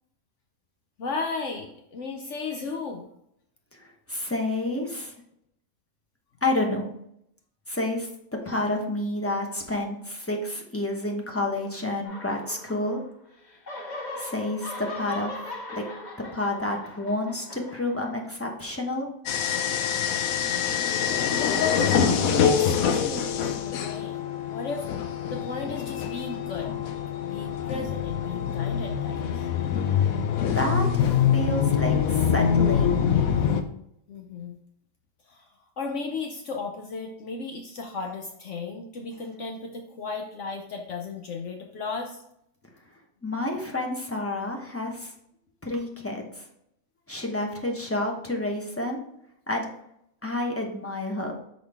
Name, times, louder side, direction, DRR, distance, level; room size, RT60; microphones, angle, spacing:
voice 1, 1.0-3.1 21.4-24.2 24.5-24.9 25.3-26.7 27.2-29.5 34.1-34.6 35.3-35.5 35.8-42.2, left 4 dB, 65° left, 2 dB, 1.0 m, -35 dB
voice 2, 3.7-5.1 6.4-6.9 7.7-8.1 8.4-13.0 14.2-15.4 15.7-15.9 16.3-19.1 30.5-33.0 43.2-45.1 45.6-46.4 47.1-49.0 49.5-49.7 50.2-51.4, left 1 dB, 10° left, 1 dB, 0.8 m, -29 dB
sound 1, 12.1-13.2 13.5-18.4, left 2 dB, 35° left, 1.4 m, -39 dB
sound 2, 19.3-33.6, left 7 dB, 90° left, 1.1 m, -25 dB
6.1 x 5.1 x 3.4 m, 0.75 s
omnidirectional pair, 1.4 m